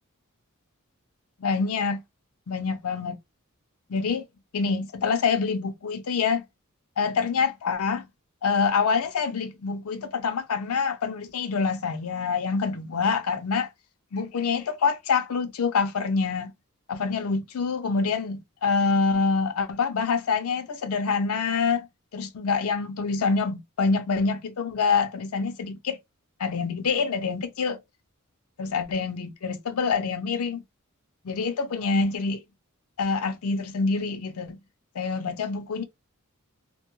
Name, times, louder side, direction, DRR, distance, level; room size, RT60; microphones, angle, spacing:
voice 1, 1.4-2.0 2.5-3.2 3.9-4.3 4.5-6.4 7.0-8.0 8.4-13.7 14.1-16.5 16.9-21.9 22.1-26.0 26.4-27.8 28.6-30.6 31.2-32.4 33.0-34.6 34.9-35.8, left 5 dB, 75° left, 0.5 m, -26 dB
2.6 x 2.2 x 3.0 m
head